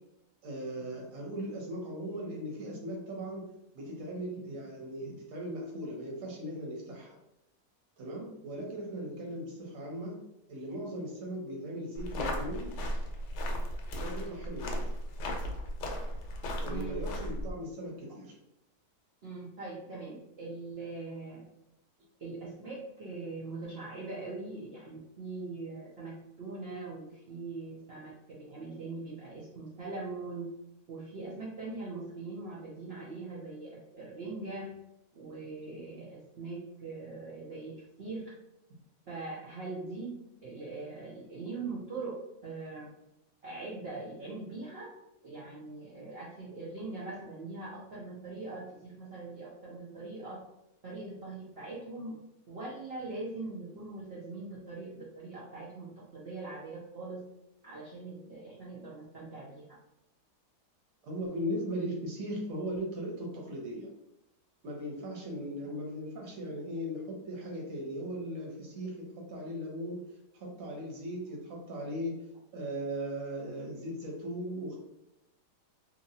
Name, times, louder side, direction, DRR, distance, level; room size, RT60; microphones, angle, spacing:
voice 1, 0.4-3.4 3.7-7.1 8.0-10.1 10.5-12.7 13.9-14.9 16.6-18.4 61.0-63.9 64.6-72.2 72.5-74.8, equal, 60° right, -1 dB, 1.1 m, -38 dB
sound 1, 12.0-17.5, equal, 80° left, 1.2 m, -35 dB
voice 2, 16.7-17.1 19.2-21.4 22.2-30.5 30.9-34.7 35.1-38.3 39.1-40.2 40.4-42.2 42.4-42.9 43.4-44.9 45.2-50.4 50.8-52.2 52.5-57.2 57.6-59.8, right 3 dB, 80° right, -6 dB, 0.5 m, -41 dB
2.9 x 2.6 x 2.7 m, 0.88 s
omnidirectional pair, 1.9 m